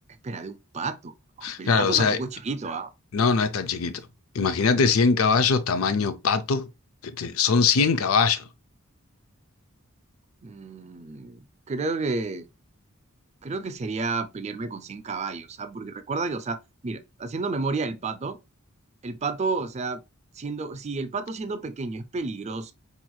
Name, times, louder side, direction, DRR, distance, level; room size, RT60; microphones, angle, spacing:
voice 1, 0.2-2.9 10.4-12.5 13.4-18.4 19.0-20.0 20.4-22.7, right 3 dB, 30° right, 0.4 m, -31 dB
voice 2, 1.4-2.2 3.1-4.0 4.3-6.7 7.0-8.4, left 5 dB, 75° left, 0.5 m, -22 dB
4.3 x 3.1 x 2.2 m
head